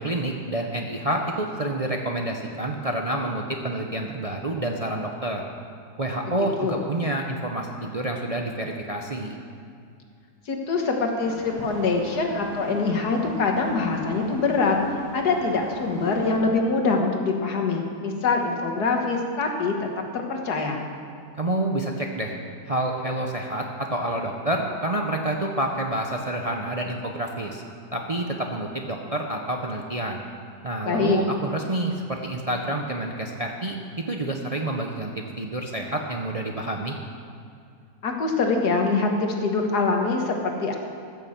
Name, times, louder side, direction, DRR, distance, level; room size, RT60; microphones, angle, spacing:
voice 1, 0.0-5.4 6.0-9.4 21.4-22.3 22.7-27.6 27.9-30.2 30.6-33.8 34.1-35.1 35.4-36.9, right 1 dB, 35° right, 2 dB, 0.6 m, -28 dB
voice 2, 6.3-6.8 10.5-14.8 15.1-19.9 20.1-20.8 30.9-31.2 38.0-40.8, left 4 dB, 85° left, 2 dB, 1.9 m, -24 dB
sound 1, 11.2-16.4, equal, 90° right, 3.0 m, -38 dB
14.5 x 6.9 x 7.2 m, 2.4 s
omnidirectional pair, 1.7 m